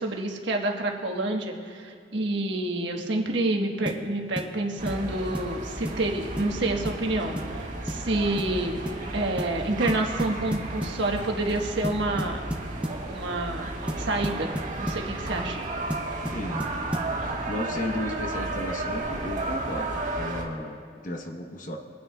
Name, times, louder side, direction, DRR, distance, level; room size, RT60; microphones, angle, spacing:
voice 1, 0.0-8.8 9.1-12.4 13.1-14.5 14.8-15.6, right 2 dB, 85° right, 1 dB, 1.3 m, -28 dB
Cajon Bass Percussion Drum, 3.9-4.1 4.4-4.5 4.9-5.1 5.3-5.5 5.9-6.1 6.4-6.5 6.9-7.0 7.4-7.6 7.9-8.1 8.4-8.6 8.9-9.0 9.4-9.6 9.9-11.0 11.8-13.0 13.9-15.1 15.9-17.2, equal, 5° right, 0.6 m, -33 dB
sound 1, 4.8-20.4, right 2 dB, 45° right, 1.5 m, -33 dB
voice 2, 16.3-16.6 17.5-21.8, left 1 dB, 45° left, 4 dB, 0.9 m, -34 dB
25.0 x 9.5 x 2.3 m, 2.2 s
head